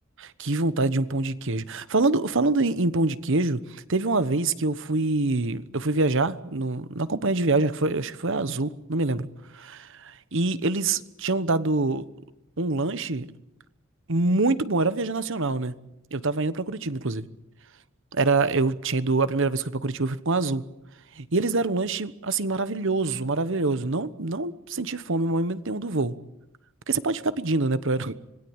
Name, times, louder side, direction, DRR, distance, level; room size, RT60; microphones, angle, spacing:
voice 1, 0.2-9.3 9.5-12.0 12.6-13.3 14.1-15.7 16.1-17.3 18.1-20.6 21.1-26.2 26.9-28.1, right 3 dB, 60° right, 1.2 m, -25 dB
26.0 x 20.5 x 8.9 m
head